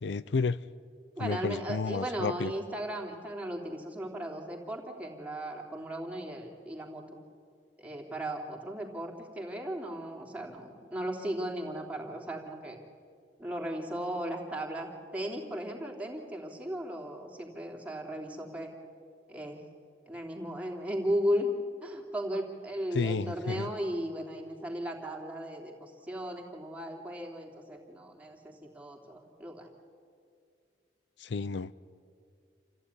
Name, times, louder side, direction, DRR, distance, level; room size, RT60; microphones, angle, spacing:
voice 1, 0.0-0.6 1.2-2.5 22.9-23.7 31.2-31.7, left 4 dB, 75° left, 17 dB, 0.5 m, -31 dB
voice 2, 1.2-7.0 7.8-12.8 13.4-18.8 19.3-19.6 20.1-21.5 21.8-29.7, equal, 10° right, -1 dB, 3.1 m, -36 dB
28.0 x 15.5 x 9.8 m, 2.3 s
head